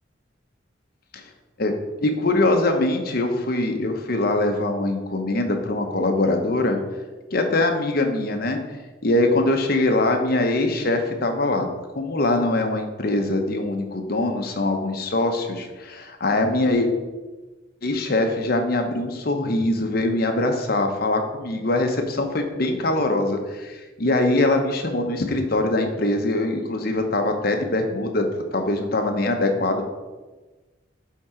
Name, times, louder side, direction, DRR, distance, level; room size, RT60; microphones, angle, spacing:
voice 1, 2.0-6.8 7.3-8.6 9.0-11.7 11.9-16.9 17.8-28.2 28.5-29.9, left 2 dB, 50° left, 4 dB, 0.8 m, -22 dB
8.5 x 3.7 x 4.4 m, 1.2 s
head